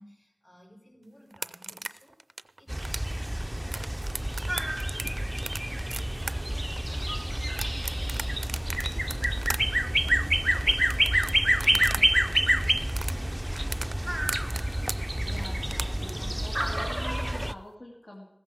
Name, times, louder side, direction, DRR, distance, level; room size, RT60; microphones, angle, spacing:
voice 1, 0.0-2.2 2.6-14.5, equal, 45° left, -2 dB, 5.6 m, -56 dB
sound 1, 1.3-12.0 12.3-16.1, right 3 dB, 75° right, 0.4 m, -37 dB
sound 2, 2.7-17.5, right 1 dB, 10° right, 0.4 m, -28 dB
voice 2, 15.2-18.3, left 1 dB, 60° left, -3 dB, 2.2 m, -44 dB
15.5 x 14.5 x 4.9 m, 0.88 s
wide cardioid pair, 60°, 0 cm